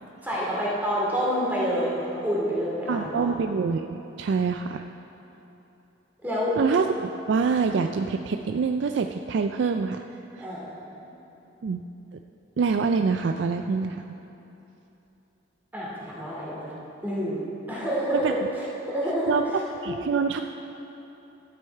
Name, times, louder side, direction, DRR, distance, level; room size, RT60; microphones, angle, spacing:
voice 1, 0.2-3.3 6.2-6.6 10.4-11.0 15.7-16.7 17.0-17.4 17.7-19.9, equal, 10° right, -7 dB, 2.4 m, -28 dB
voice 2, 2.9-4.8 6.6-10.0 10.4-10.5 11.6-11.8 12.6-14.1 18.1-18.5 19.3-20.4, right 5 dB, 60° right, 6 dB, 0.3 m, -26 dB
12.5 x 8.5 x 4.6 m, 3.0 s
head